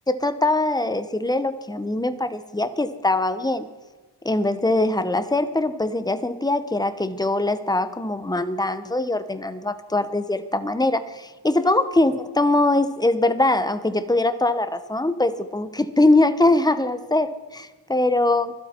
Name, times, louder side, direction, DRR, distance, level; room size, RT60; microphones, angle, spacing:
voice 1, 0.1-3.7 4.2-18.5, left 2 dB, 10° left, 11 dB, 0.8 m, -22 dB
24.5 x 8.4 x 4.4 m, 1.2 s
wide cardioid pair, 100°, 46 cm